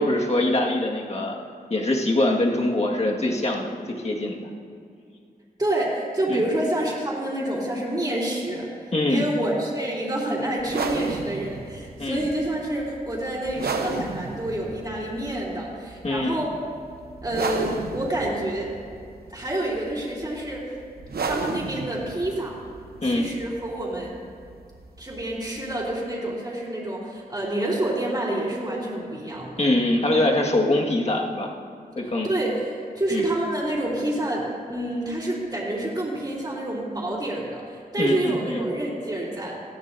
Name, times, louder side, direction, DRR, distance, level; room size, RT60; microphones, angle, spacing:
voice 1, 0.0-1.4 1.7-4.5 6.3-6.4 8.9-9.3 12.0-12.3 16.0-16.4 23.0-23.3 29.6-31.5 32.0-32.3 33.1-33.3 38.0-38.6, left 1 dB, 45° left, -1 dB, 1.8 m, -23 dB
voice 2, 5.6-16.5 17.2-18.7 19.3-20.7 21.2-22.6 23.0-24.1 25.0-29.6 32.0-32.6 32.9-39.6, right 1 dB, 25° right, -7 dB, 3.3 m, -28 dB
sound 1, 10.6-25.9, right 4 dB, 80° right, 0.9 m, -34 dB
18.5 x 14.0 x 2.7 m, 2.4 s
wide cardioid pair, 70°, 16 cm